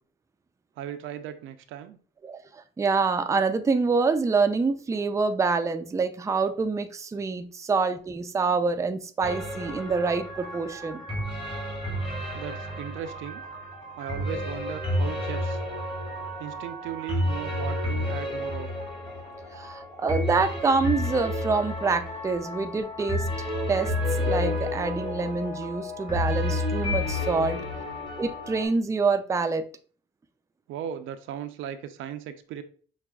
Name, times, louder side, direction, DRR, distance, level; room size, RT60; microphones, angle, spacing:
voice 1, 0.8-2.0 12.3-13.4 14.0-15.6 16.4-18.7 30.7-32.6, right 9 dB, 85° right, 0.5 m, -37 dB
voice 2, 2.2-11.1 19.6-23.3 23.7-23.9 24.2-27.7 28.2-29.7, right 4 dB, 15° right, 0.3 m, -26 dB
sound 1, 9.2-28.6, left 1 dB, 25° left, 1.5 m, -31 dB
5.9 x 2.3 x 2.3 m
cardioid pair, 90°, 20 cm